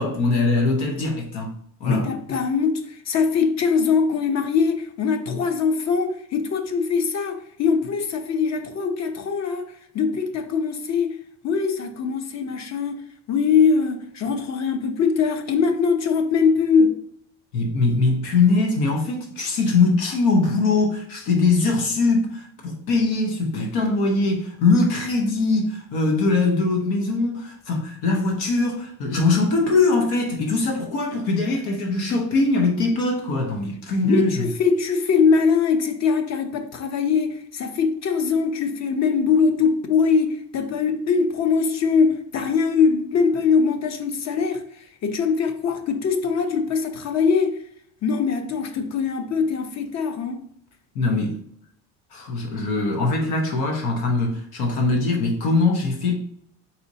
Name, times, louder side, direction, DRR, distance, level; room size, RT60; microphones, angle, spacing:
voice 1, 0.0-1.5 1.8-2.1 17.5-34.5 50.9-51.4 52.1-56.2, left 3 dB, 85° left, 0.9 m, -22 dB
voice 2, 1.8-11.2 11.4-13.0 13.3-17.0 34.0-44.6 45.0-47.6 48.0-50.4, left 5 dB, 45° left, 0.7 m, -22 dB
4.2 x 4.1 x 2.7 m
cardioid pair, 115°, 36 cm